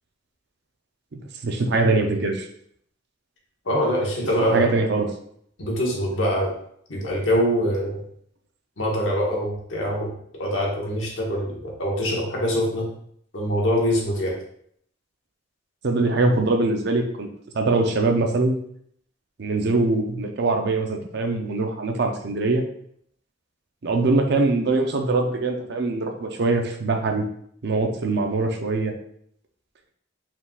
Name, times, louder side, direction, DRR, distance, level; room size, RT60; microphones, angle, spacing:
voice 1, 1.1-2.5 4.5-5.1 15.8-17.3 17.5-18.6 19.4-22.6 23.8-27.2 27.6-28.9, right 3 dB, 60° right, 4 dB, 0.5 m, -22 dB
voice 2, 3.6-4.7 5.6-6.5 6.9-8.0 8.8-10.1 10.4-12.9 13.3-14.3, equal, 80° left, -2 dB, 1.3 m, -24 dB
4.5 x 3.7 x 2.4 m, 0.66 s
head